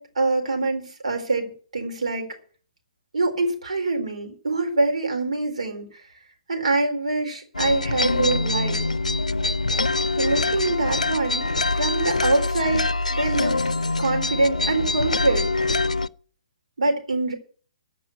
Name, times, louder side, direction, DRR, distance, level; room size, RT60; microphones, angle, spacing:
voice 1, 0.0-2.3 3.1-6.1 6.5-8.8 10.2-12.8 13.1-13.6 14.0-15.5 16.8-17.3, right 2 dB, 70° right, 3 dB, 4.0 m, -24 dB
sound 1, 7.5-16.1, left 3 dB, 85° left, 0.5 m, -24 dB
14.5 x 5.4 x 9.7 m, 0.43 s
figure-of-eight pair, 125°, 4 cm